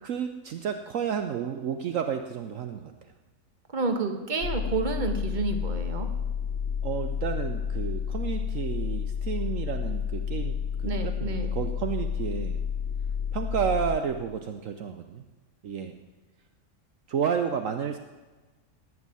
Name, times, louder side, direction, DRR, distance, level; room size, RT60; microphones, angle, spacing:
voice 1, 0.0-2.9 6.8-12.6 13.3-15.2 15.6-15.9 17.1-18.0, right 7 dB, 65° right, 7 dB, 1.1 m, -31 dB
voice 2, 3.7-6.1 10.8-11.6, right 3 dB, 35° right, 6 dB, 1.4 m, -30 dB
sound 1, 4.4-14.0, left 7 dB, 50° left, 1.2 m, -30 dB
18.5 x 6.3 x 9.2 m, 1.2 s
omnidirectional pair, 1.5 m